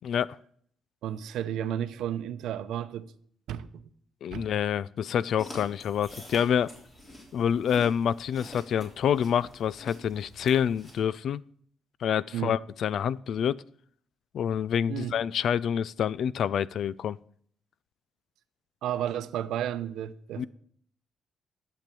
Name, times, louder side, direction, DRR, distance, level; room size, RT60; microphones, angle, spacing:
voice 1, 1.0-3.1 3.5-3.8 4.3-4.5 12.3-12.6 14.9-15.1 18.8-20.5, right 10 dB, 90° right, 0.7 m, -32 dB
voice 2, 4.2-6.7 7.3-11.4 12.0-13.6 14.3-17.2 20.4-20.5, left 8 dB, 65° left, 0.4 m, -27 dB
sound 1, 5.4-11.0, left 1 dB, 25° left, 3.8 m, -47 dB
12.0 x 7.8 x 6.9 m
cardioid pair, 125°, 0 cm